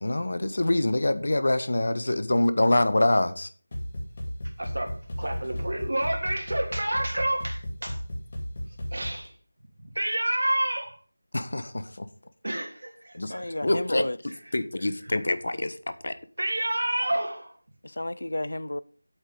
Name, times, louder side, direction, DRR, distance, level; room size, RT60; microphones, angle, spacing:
voice 1, 0.0-3.5 11.3-12.0 13.1-13.3 13.6-14.0 14.5-15.7 16.0-16.1, left 1 dB, 55° left, 1.2 m, -25 dB
sound 1, 3.7-9.3, equal, 25° left, 2.3 m, -35 dB
voice 2, 4.6-8.0 8.9-9.3 9.8-11.0 12.4-13.5 14.3-14.4 14.8-15.2 16.4-17.5, right 1 dB, 70° right, 3.1 m, -29 dB
voice 3, 13.2-14.2 17.8-18.8, left 1 dB, 80° left, 0.7 m, -32 dB
8.8 x 8.0 x 5.4 m
figure-of-eight pair, 180°, 0 cm